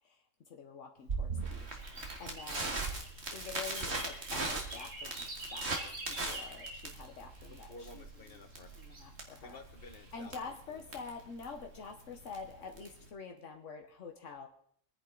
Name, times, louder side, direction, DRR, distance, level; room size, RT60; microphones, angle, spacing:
voice 1, 0.5-1.8 2.2-2.8 3.3-5.7 6.1-7.7 7.9-8.0 8.8-9.6 10.1-14.5, left 5 dB, 75° left, 3 dB, 1.4 m, -46 dB
Crackle, 1.1-13.1, right 3 dB, 60° right, 2.3 m, -40 dB
sound 1, 1.7-7.7 8.5-9.3 9.8-10.1, right 2 dB, 90° right, 2.9 m, -47 dB
voice 2, 7.5-8.7 9.4-10.6, left 3 dB, 50° left, 6 dB, 1.7 m, -53 dB
24.5 x 10.0 x 3.8 m, 0.62 s
omnidirectional pair, 1.3 m